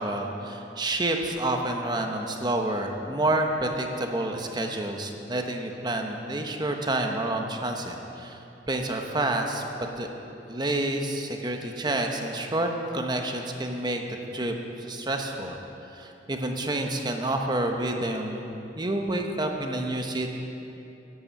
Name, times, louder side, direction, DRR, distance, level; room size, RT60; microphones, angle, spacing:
voice 1, 0.0-8.4 8.7-9.6 10.0-10.1 10.4-14.0 14.3-14.5 14.9-15.6 15.9-18.5 18.8-20.3, right 1 dB, 25° right, 3 dB, 1.0 m, -28 dB
11.0 x 10.0 x 7.1 m, 2.9 s
head